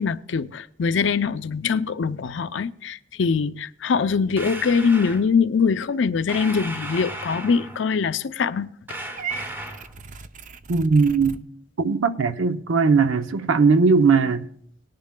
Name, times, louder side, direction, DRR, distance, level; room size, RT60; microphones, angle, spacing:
voice 1, 0.0-8.7, left 5 dB, 70° left, 0.5 m, -23 dB
sound 1, 4.4-5.2 6.3-7.9 8.9-9.9, right 1 dB, 10° right, 0.8 m, -35 dB
Purr / Meow, 9.2-11.4, right 5 dB, 40° right, 0.5 m, -36 dB
voice 2, 10.7-11.4 11.8-14.5, right 4 dB, 90° right, 0.6 m, -19 dB
19.5 x 10.5 x 2.2 m
head